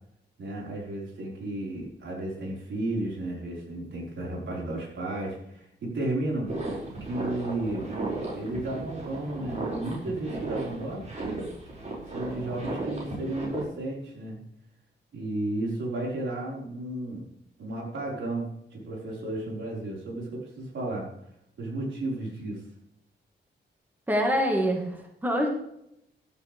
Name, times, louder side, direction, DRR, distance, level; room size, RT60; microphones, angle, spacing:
voice 1, 0.4-6.5 7.0-7.9 8.3-11.2 12.1-14.4 15.1-17.3 17.6-21.1 21.6-22.6, right 2 dB, 80° right, -3 dB, 5.4 m, -33 dB
sound 1, 6.5-13.6, right 2 dB, 40° right, 6.2 m, -35 dB
voice 2, 24.1-25.5, equal, 10° right, 1 dB, 2.1 m, -25 dB
16.0 x 11.5 x 3.6 m, 0.77 s
wide cardioid pair, 145°, 19 cm